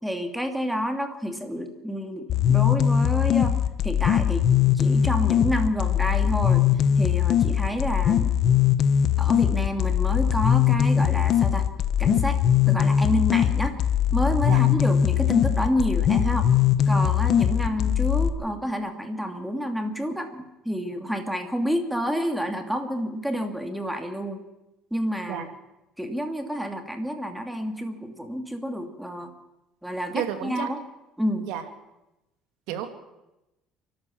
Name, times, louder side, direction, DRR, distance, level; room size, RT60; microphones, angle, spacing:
voice 1, 0.0-3.6 3.8-4.4 4.7-6.6 7.0-8.4 9.2-11.7 12.0-12.4 12.7-13.7 14.1-16.5 16.9-24.4 24.9-25.5 26.0-29.3 29.8-30.8 31.2-31.5, equal, ahead, 5 dB, 2.7 m, -29 dB
sound 1, 2.3-18.3, left 9 dB, 55° left, 1.3 m, -21 dB
voice 2, 30.1-30.7 31.5-31.6 32.7-32.9, right 11 dB, 85° right, 6 dB, 2.7 m, -30 dB
29.5 x 12.0 x 7.3 m, 0.96 s
cardioid pair, 105°, 0 cm